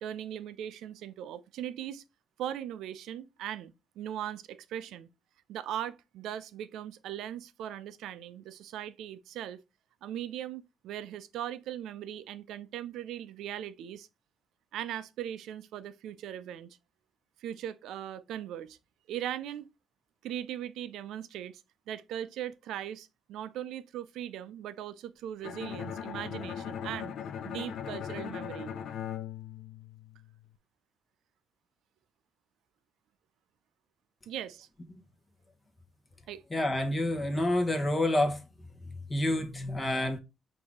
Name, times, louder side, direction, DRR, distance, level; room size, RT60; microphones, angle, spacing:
voice 1, 0.0-2.0 2.4-5.1 5.5-9.6 10.0-14.1 14.7-16.8 17.4-18.8 19.1-19.7 20.2-21.6 21.9-27.1 27.4-28.7 34.3-34.7 36.3-36.4, right 11 dB, 85° right, 0.3 m, -39 dB
Bowed string instrument, 25.4-30.4, left 8 dB, 70° left, 0.4 m, -39 dB
voice 2, 36.5-38.4 39.1-40.2, left 1 dB, 25° left, 1.0 m, -28 dB
4.7 x 2.6 x 3.5 m
cardioid pair, 90°, 0 cm